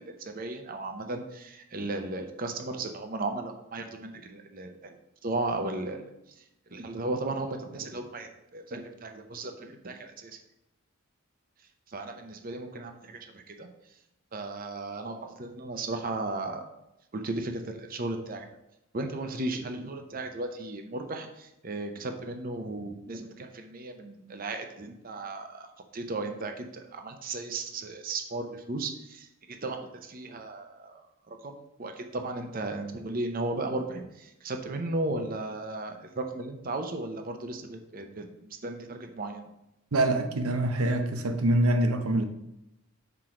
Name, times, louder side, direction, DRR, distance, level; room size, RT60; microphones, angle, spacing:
voice 1, 0.0-5.0 5.2-10.4 11.9-14.0 14.3-16.6 17.1-18.5 18.9-31.0 31.3-39.4, right 2 dB, 40° right, 6 dB, 0.7 m, -35 dB
voice 2, 39.9-42.2, right 1 dB, 90° right, 7 dB, 0.8 m, -25 dB
6.0 x 4.5 x 4.9 m, 0.87 s
head